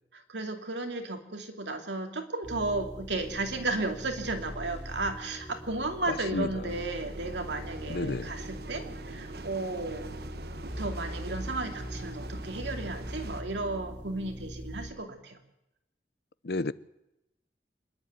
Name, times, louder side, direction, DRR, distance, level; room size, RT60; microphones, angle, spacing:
voice 1, 0.1-10.1 10.8-15.4, right 2 dB, 90° right, 2.7 m, -34 dB
sound 1, 2.4-14.9, equal, 5° right, 5.0 m, -42 dB
voice 2, 6.1-6.5 7.9-8.3 16.4-16.7, left 2 dB, 65° left, 0.7 m, -31 dB
sound 2, 6.7-13.4, right 2 dB, 60° right, 0.9 m, -44 dB
26.5 x 10.5 x 9.6 m
head